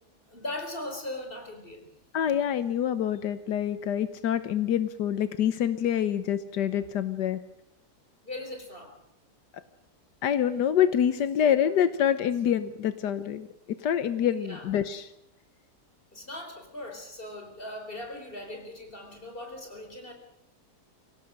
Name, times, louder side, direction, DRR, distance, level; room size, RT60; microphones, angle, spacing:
voice 1, 0.3-1.9 8.2-9.0 14.4-14.7 16.1-20.1, left 1 dB, 30° left, 4 dB, 4.8 m, -39 dB
voice 2, 2.1-7.4 10.2-15.1, left 9 dB, 85° left, 13 dB, 1.6 m, -26 dB
24.0 x 17.5 x 6.4 m, 0.87 s
omnidirectional pair, 1.8 m